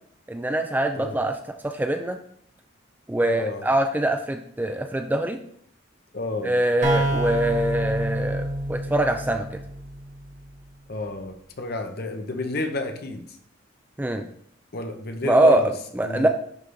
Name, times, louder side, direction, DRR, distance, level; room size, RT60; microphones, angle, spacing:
voice 1, 0.3-1.4 1.6-2.2 3.1-5.4 6.4-8.4 8.7-9.5 14.0-14.2 15.2-16.3, right 1 dB, 10° right, 6 dB, 0.4 m, -23 dB
voice 2, 3.2-3.7 6.1-6.6 10.9-13.2 14.7-15.7 16.0-16.3, left 3 dB, 55° left, 5 dB, 0.9 m, -30 dB
sound 1, 6.8-10.5, right 1 dB, 40° right, 1.5 m, -28 dB
10.5 x 3.9 x 3.3 m, 0.65 s
head